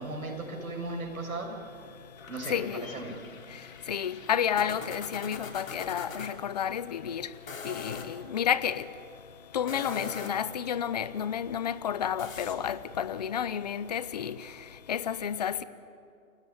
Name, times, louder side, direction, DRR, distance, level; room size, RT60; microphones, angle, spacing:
voice 1, 0.0-1.5 2.3-3.1, right 2 dB, 75° right, 6.9 m, -36 dB
sound 1, 2.2-6.3 7.3-8.1 9.5-10.5 12.2-12.6, left 5 dB, 65° left, 3.6 m, -43 dB
voice 2, 2.5-2.9 3.9-7.3 7.6-8.9 9.5-14.5 14.9-15.6, left 9 dB, 30° left, 0.7 m, -31 dB
28.5 x 16.5 x 9.5 m
hypercardioid pair, 155°, 43 cm